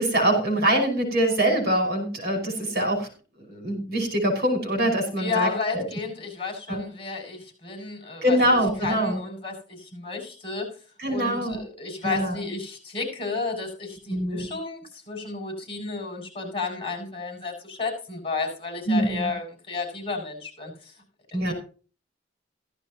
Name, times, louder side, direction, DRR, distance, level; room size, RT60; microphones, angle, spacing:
voice 1, 0.0-3.1 3.5-5.8 6.7-6.8 8.2-9.2 11.0-11.6 12.0-12.4 14.1-14.5 18.9-19.3 21.3-21.5, right 1 dB, 55° right, 4 dB, 5.5 m, -24 dB
voice 2, 5.2-10.7 11.1-20.9 21.3-21.5, left 4 dB, 30° left, 2 dB, 7.0 m, -32 dB
16.0 x 13.5 x 3.0 m, 0.38 s
head